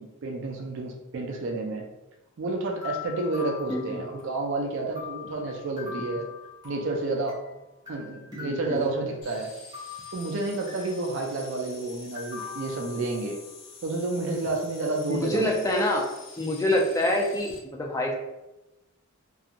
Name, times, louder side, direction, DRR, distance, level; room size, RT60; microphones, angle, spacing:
voice 1, 0.2-1.9 2.4-6.3 6.6-7.4 7.9-9.5 10.1-13.4 13.8-15.7, right 2 dB, 55° right, 1 dB, 0.4 m, -30 dB
sound 1, 2.7-4.5 4.9-7.5 7.9-9.3 9.7-11.1 12.1-13.6, left 7 dB, 20° right, 0.8 m, -43 dB
voice 2, 3.7-4.0 6.0-6.2 8.3-8.9 15.1-16.0 16.4-18.1, left 1 dB, 15° left, -1 dB, 0.4 m, -26 dB
sound 2, 9.2-17.6, left 3 dB, 60° left, 0.7 m, -47 dB
2.8 x 2.3 x 2.4 m, 0.98 s
head